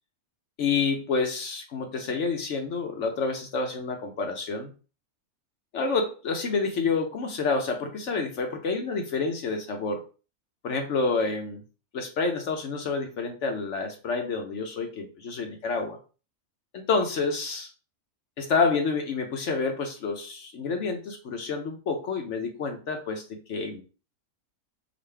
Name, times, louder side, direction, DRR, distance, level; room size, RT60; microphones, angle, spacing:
voice 1, 0.6-4.7 5.7-10.0 10.6-11.6 11.9-16.0 16.7-17.7 18.4-23.2 23.5-23.8, left 4 dB, 60° left, 4 dB, 0.9 m, -28 dB
5.1 x 2.5 x 3.3 m, 0.34 s
omnidirectional pair, 1.6 m